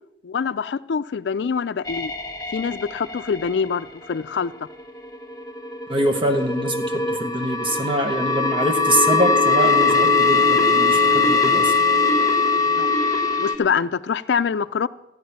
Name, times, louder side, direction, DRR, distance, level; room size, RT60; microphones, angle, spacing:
voice 1, 0.2-2.1 2.5-4.5 12.6-12.9 13.4-14.9, left 6 dB, 75° left, 0.4 m, -25 dB
sound 1, 1.9-3.7 4.5-13.6, left 4 dB, 20° left, 1.2 m, -21 dB
voice 2, 5.9-11.7, right 1 dB, 30° right, 0.9 m, -24 dB
14.0 x 9.4 x 5.7 m
head